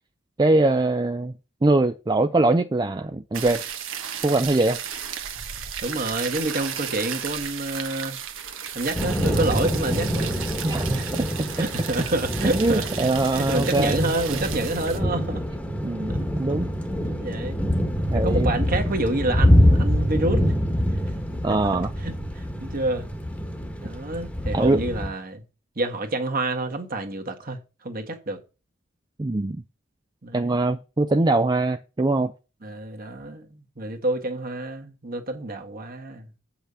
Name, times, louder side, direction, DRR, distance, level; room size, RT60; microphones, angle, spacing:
voice 1, 0.4-1.3 1.6-3.6 4.2-4.8 10.6-11.1 12.5-14.4 15.8-16.7 18.1-18.5 21.4-21.9 24.5-24.9 29.2-29.6 30.3-32.3, right 2 dB, 20° right, 0.5 m, -22 dB
sound 1, 3.3-15.0, right 8 dB, 75° right, 1.3 m, -34 dB
voice 2, 5.8-8.2 8.7-10.4 10.9-11.2 11.6-15.4 16.5-16.6 17.1-17.6 18.1-20.5 21.5-23.1 23.8-25.4 25.7-27.6 27.8-28.4 30.2-30.6 32.6-36.3, right 2 dB, 45° right, 1.6 m, -28 dB
Thunder / Rain, 8.9-25.1, equal, 5° left, 1.3 m, -25 dB
8.2 x 5.8 x 6.8 m
head